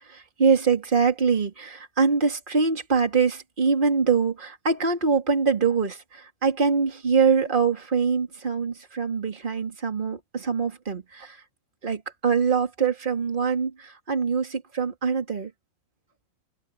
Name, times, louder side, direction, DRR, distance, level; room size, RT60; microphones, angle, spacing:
voice 1, 0.1-11.4 11.8-15.5, right 5 dB, 15° right, 1.8 m, -24 dB
omnidirectional pair, 4.4 m